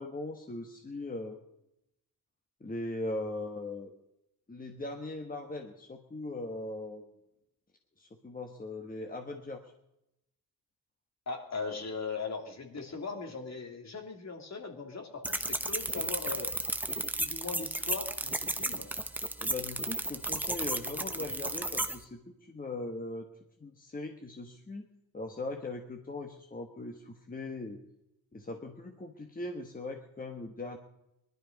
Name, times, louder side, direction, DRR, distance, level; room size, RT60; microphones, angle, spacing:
voice 1, 0.0-1.4 2.6-3.9 4.5-7.0 8.0-9.6 19.4-23.3 23.6-24.9 25.1-27.8 28.3-30.8, left 2 dB, 25° left, 4 dB, 1.4 m, -40 dB
voice 2, 11.3-16.5 17.2-18.9, left 4 dB, 50° left, 3 dB, 2.9 m, -39 dB
sound 1, 15.2-22.0, right 1 dB, 5° right, 1.1 m, -33 dB
20.0 x 12.0 x 5.3 m, 0.85 s
cardioid pair, 110°, 35 cm